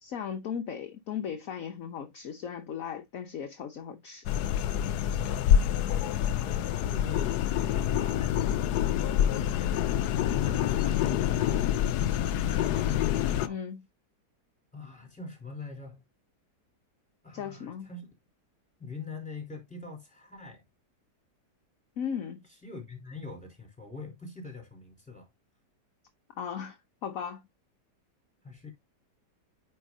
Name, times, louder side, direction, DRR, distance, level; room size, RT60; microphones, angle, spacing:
voice 1, 0.0-4.2 13.4-13.8 17.3-17.9 22.0-22.5 26.4-27.4, left 8 dB, 55° left, 1.2 m, -37 dB
sound 1, 4.3-13.5, left 10 dB, 75° left, 1.1 m, -26 dB
voice 2, 6.3-8.4 8.7-13.6 14.7-16.0 17.2-18.1 18.8-20.6 22.6-25.3 28.4-28.7, left 3 dB, 5° left, 3.5 m, -44 dB
9.1 x 5.4 x 2.7 m
omnidirectional pair, 1.9 m